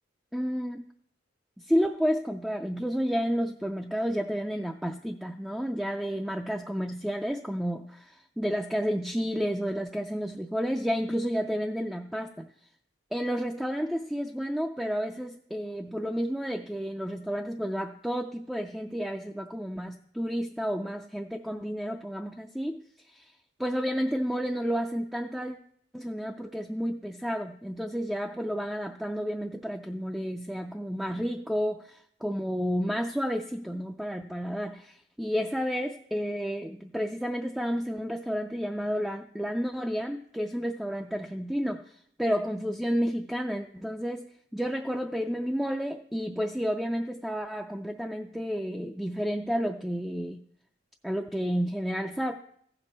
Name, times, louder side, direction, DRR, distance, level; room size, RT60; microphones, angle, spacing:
voice 1, 0.3-0.8 1.6-12.5 13.1-23.3 23.6-25.6 25.9-50.4 51.0-52.3, equal, ahead, 3 dB, 0.3 m, -31 dB
15.5 x 5.2 x 4.2 m, 0.66 s
head